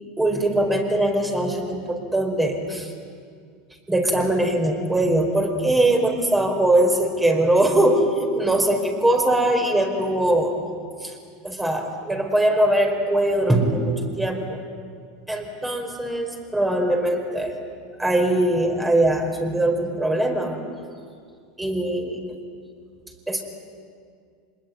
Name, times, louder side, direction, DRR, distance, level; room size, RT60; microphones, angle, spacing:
voice 1, 0.2-2.9 3.9-10.5 11.0-11.2 11.4-14.6 15.3-17.7 18.0-20.6 21.6-22.3 23.3-23.4, right 1 dB, 10° right, 3 dB, 5.1 m, -21 dB
25.5 x 21.0 x 9.6 m, 2.2 s
hypercardioid pair, 95°, 0 cm